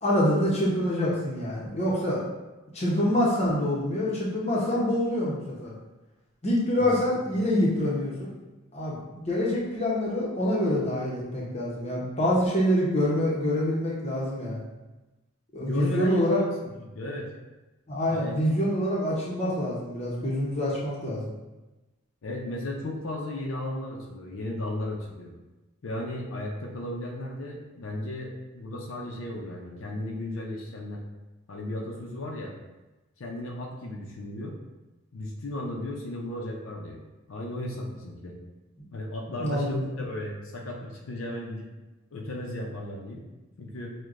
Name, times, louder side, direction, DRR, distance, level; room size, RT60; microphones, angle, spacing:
voice 1, 0.0-2.2 2.7-5.7 6.4-8.3 8.7-14.6 15.5-16.4 17.9-21.3 39.4-39.7, left 1 dB, 30° left, -5 dB, 0.8 m, -26 dB
voice 2, 15.6-17.3 18.1-18.3 22.2-25.3 25.8-31.0 31.5-32.5 33.2-34.5 35.1-37.0 37.3-38.3 38.9-41.7 42.1-43.2 43.6-43.9, left 1 dB, 70° left, -1 dB, 0.5 m, -35 dB
6.2 x 2.2 x 2.5 m, 1.1 s
head